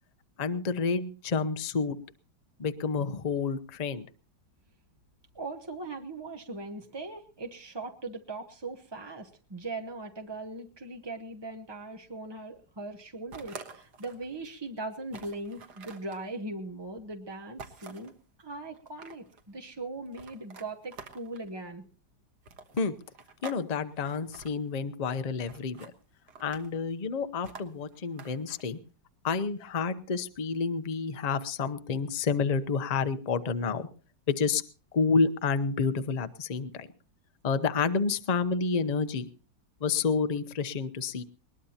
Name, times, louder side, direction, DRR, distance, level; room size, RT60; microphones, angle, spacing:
voice 1, 0.4-2.0 2.6-4.1 22.7-22.9 23.4-25.9 26.4-28.8 29.2-33.9 34.3-34.6 34.9-36.9 37.4-39.3 39.8-41.2, left 5 dB, 50° left, 10 dB, 0.4 m, -29 dB
voice 2, 5.3-18.1 18.4-21.8, right 2 dB, 30° right, 4 dB, 0.4 m, -40 dB
sound 1, 13.3-14.3 14.7-14.8 15.1-16.2 17.6-18.1 18.7-19.4 20.1-21.5 22.4-23.6 23.9-24.5 25.5-25.9 26.3-26.8 27.4-28.6, right 4 dB, 60° right, 1.9 m, -47 dB
21.0 x 20.0 x 2.9 m, 0.36 s
omnidirectional pair, 2.0 m